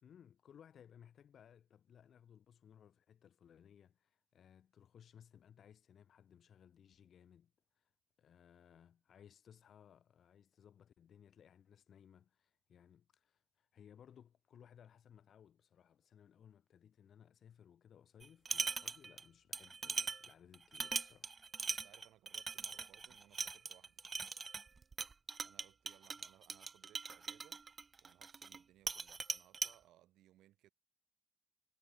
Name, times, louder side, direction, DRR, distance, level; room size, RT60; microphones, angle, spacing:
voice 1, 0.0-7.9 8.2-21.3, left 8 dB, 60° left, 2.0 m, -62 dB
sound 1, 18.2-19.2 19.5-28.6 28.9-29.7, right 4 dB, 35° right, 0.3 m, -41 dB
voice 2, 21.7-24.1 25.4-27.6 28.0-30.7, right 14 dB, 85° right, 2.7 m, -66 dB
cardioid pair, 90°, 0 cm